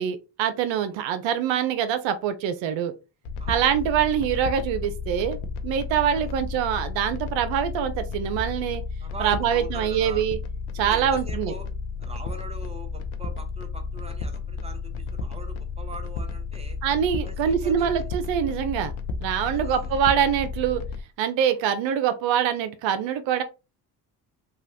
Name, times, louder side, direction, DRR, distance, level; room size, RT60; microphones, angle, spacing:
voice 1, 0.0-2.9 3.5-5.4 5.6-8.8 9.2-10.4 10.7-11.5 16.8-18.9 19.2-20.8 21.2-23.4, right 9 dB, 65° right, 0.6 m, -24 dB
sound 1, 3.2-21.0, left 4 dB, 75° left, 0.6 m, -33 dB
voice 2, 9.0-10.2 10.8-11.7 12.0-16.8 17.2-18.1 19.5-20.0, right 2 dB, 10° right, 0.9 m, -42 dB
3.0 x 2.3 x 2.7 m
hypercardioid pair, 50°, 49 cm